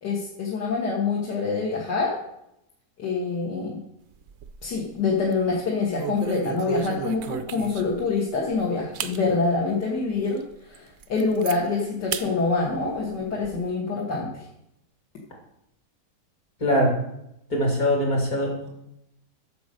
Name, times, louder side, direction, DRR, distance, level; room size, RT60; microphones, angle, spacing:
voice 1, 0.0-2.2 3.0-3.8 4.6-10.4 10.7-14.3, left 4 dB, 70° left, -3 dB, 2.1 m, -26 dB
sound 1, 4.1-4.8 5.2-5.4 5.9-8.0 8.5-8.6 8.9-9.2 9.7-9.8 10.3-10.4 10.7-11.6 12.1-12.3 12.7-13.6, right 9 dB, 75° right, 0.6 m, -34 dB
voice 2, 16.6-16.9 17.5-18.7, equal, 55° left, -1 dB, 3.3 m, -22 dB
9.0 x 6.7 x 6.5 m, 0.82 s
omnidirectional pair, 1.9 m